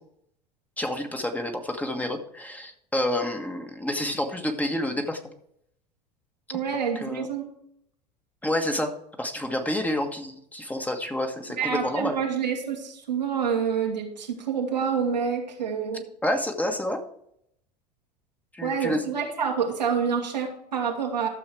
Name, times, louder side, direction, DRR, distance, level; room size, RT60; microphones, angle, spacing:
voice 1, 0.8-5.3 6.7-7.3 8.4-12.2 16.2-17.0 18.5-19.0, left 1 dB, 5° left, 4 dB, 1.5 m, -29 dB
voice 2, 6.5-7.5 11.6-16.1 18.6-21.3, right 6 dB, 85° right, 0 dB, 2.2 m, -27 dB
12.5 x 7.2 x 4.7 m, 0.72 s
hypercardioid pair, 80°, 21 cm